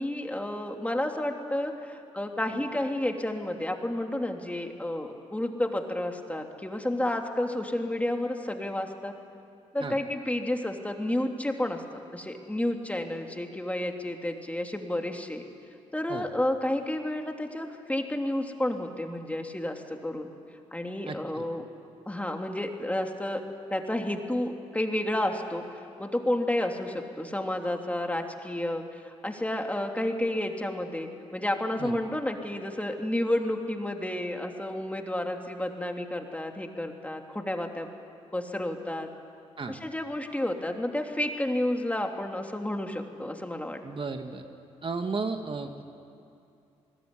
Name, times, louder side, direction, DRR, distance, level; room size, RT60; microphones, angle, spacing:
voice 1, 0.0-9.1 9.7-15.4 15.9-20.3 20.7-21.7 22.0-23.4 23.7-25.6 26.0-37.9 38.3-39.1 39.7-43.8, left 1 dB, 10° left, 3 dB, 3.2 m, -31 dB
voice 2, 21.1-21.4 31.8-32.0 39.6-39.8 43.8-44.4 44.8-45.8, right 4 dB, 45° right, 6 dB, 2.0 m, -34 dB
27.5 x 20.0 x 10.0 m, 2.6 s
supercardioid pair, 55°, 12 cm